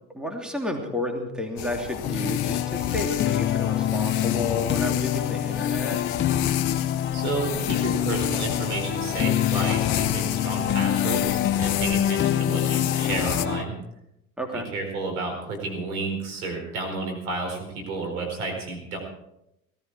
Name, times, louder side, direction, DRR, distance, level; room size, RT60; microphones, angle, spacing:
voice 1, 0.1-6.0 14.4-14.7, left 1 dB, ahead, 2 dB, 2.8 m, -31 dB
sound 1, 1.6-13.5, left 12 dB, 60° left, 1.2 m, -32 dB
sound 2, 2.0-13.6, left 11 dB, 25° left, 0.6 m, -26 dB
voice 2, 7.1-13.7 14.5-19.0, right 3 dB, 75° right, 2 dB, 4.6 m, -31 dB
18.0 x 14.0 x 4.7 m, 0.85 s
hypercardioid pair, 75°, 43 cm